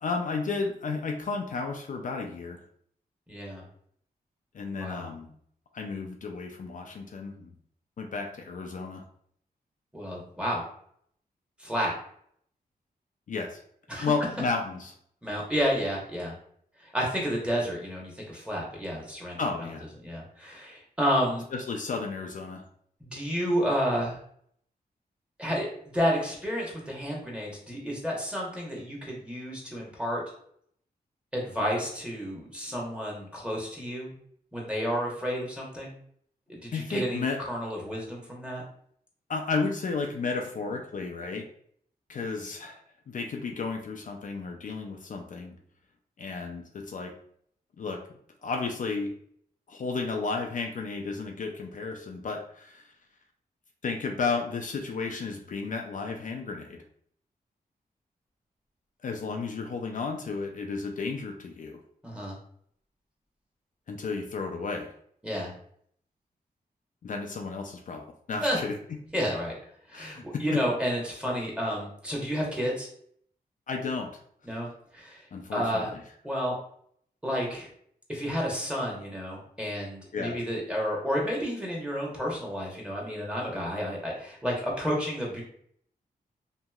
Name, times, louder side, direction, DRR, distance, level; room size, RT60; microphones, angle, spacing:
voice 1, 0.0-2.6 4.5-5.3 5.7-7.5 8.0-9.0 13.3-13.6 14.0-14.9 19.4-19.8 21.5-22.6 36.7-37.4 39.3-41.4 42.1-42.8 43.1-45.5 46.2-47.1 47.8-48.0 48.4-49.1 49.7-52.9 53.8-56.8 59.0-61.8 63.9-64.9 67.0-69.0 69.9-70.2 70.5-70.6 73.7-74.1 75.3-76.0 80.1-80.4, left 4 dB, 55° left, 2 dB, 0.4 m, -33 dB
voice 2, 3.3-3.6 4.7-5.1 9.9-10.6 11.6-11.9 13.9-14.1 15.2-16.3 16.9-19.4 20.0-21.4 23.1-24.2 25.4-25.7 25.9-30.2 31.3-34.1 34.5-36.0 36.5-38.6 62.0-62.4 65.2-65.5 68.4-68.6 69.1-69.5 69.9-72.9 74.5-75.2 75.5-75.9 76.2-76.6 77.2-77.7 78.1-85.4, equal, 5° right, -3 dB, 1.1 m, -30 dB
2.9 x 2.6 x 2.3 m, 0.65 s
cardioid pair, 80°, 16 cm